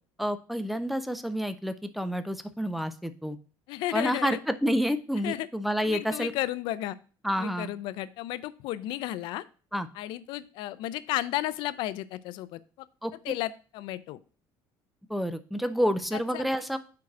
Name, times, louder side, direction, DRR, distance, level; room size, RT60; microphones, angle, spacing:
voice 1, 0.2-3.4 3.9-6.3 7.2-7.7 9.7-9.9 13.0-13.1 15.1-16.8, equal, ahead, 11 dB, 0.4 m, -29 dB
voice 2, 3.7-4.4 5.2-5.5 5.8-7.0 7.4-9.4 9.9-12.9 13.2-14.2 16.1-16.4, left 15 dB, 65° left, 16 dB, 0.4 m, -33 dB
4.8 x 4.6 x 6.0 m, 0.37 s
cardioid pair, 165°, 9 cm